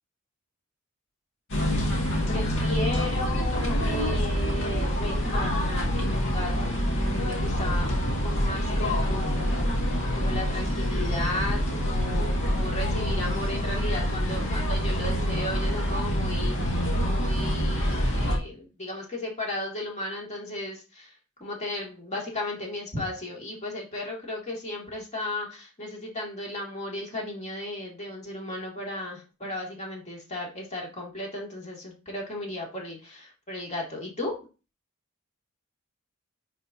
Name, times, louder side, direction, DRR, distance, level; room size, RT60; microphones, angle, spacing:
sound 1, 1.5-18.4, equal, 65° left, 1.8 m, -26 dB
voice 1, 2.3-9.7 10.1-21.1 21.4-34.3, left 1 dB, 35° left, -2 dB, 2.3 m, -35 dB
10.0 x 4.4 x 2.7 m, 0.32 s
head